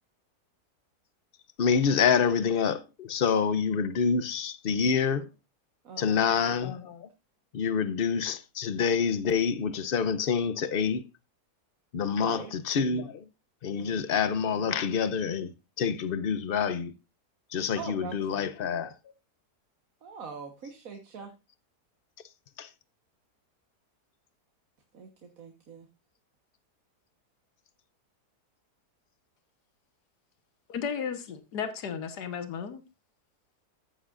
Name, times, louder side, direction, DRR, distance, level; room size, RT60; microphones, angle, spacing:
voice 1, 1.6-5.3 6.0-7.1 7.5-11.0 11.9-13.2 13.6-15.5 15.8-16.9 17.5-18.9 22.6-22.7, left 6 dB, 50° left, 0.7 m, -27 dB
voice 2, 5.8-6.4 12.1-12.6 13.8-14.0 17.7-18.5 20.0-21.3 24.9-25.9, right 6 dB, 60° right, 1.6 m, -42 dB
voice 3, 30.7-32.8, left 7 dB, 85° left, 1.7 m, -34 dB
15.0 x 7.5 x 2.5 m
omnidirectional pair, 1.7 m